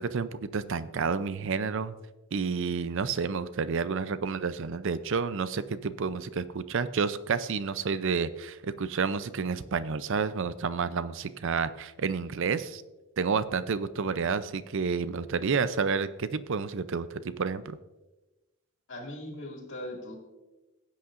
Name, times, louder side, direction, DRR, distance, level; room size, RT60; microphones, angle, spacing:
voice 1, 0.0-1.9 2.3-12.8 13.2-17.8, right 5 dB, 60° right, 14 dB, 0.5 m, -30 dB
voice 2, 18.9-20.2, left 1 dB, 60° left, 1 dB, 2.3 m, -39 dB
16.5 x 8.6 x 2.5 m, 1.1 s
head